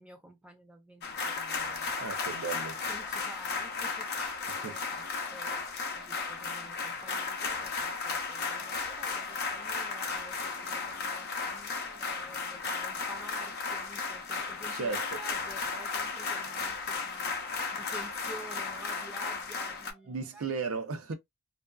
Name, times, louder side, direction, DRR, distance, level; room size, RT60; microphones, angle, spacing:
voice 1, 0.0-2.0 2.9-20.5, right 1 dB, 5° right, 0.7 m, -50 dB
sound 1, 1.0-19.9, left 4 dB, 50° left, 0.6 m, -35 dB
sound 2, 1.5-20.4, right 2 dB, 50° right, 1.0 m, -62 dB
voice 2, 2.0-2.8 4.5-4.8 14.7-15.1 20.1-21.1, right 4 dB, 85° right, 0.6 m, -35 dB
2.5 x 2.3 x 2.2 m
head